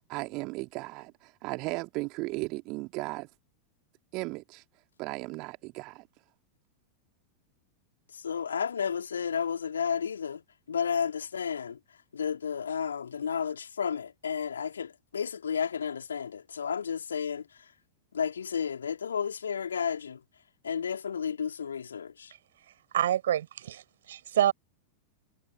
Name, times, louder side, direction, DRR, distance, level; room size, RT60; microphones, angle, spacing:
voice 1, 0.0-3.3 4.1-4.6 5.0-6.1, right 24 dB, 40° right, 3.1 m, -36 dB
voice 2, 8.1-10.4 10.7-11.8 12.1-17.7 18.1-20.2 20.6-22.3, left 7 dB, 70° left, 3.8 m, -32 dB
voice 3, 22.9-24.5, right 11 dB, 60° right, 5.1 m, -27 dB
figure-of-eight pair, 90°, 0 cm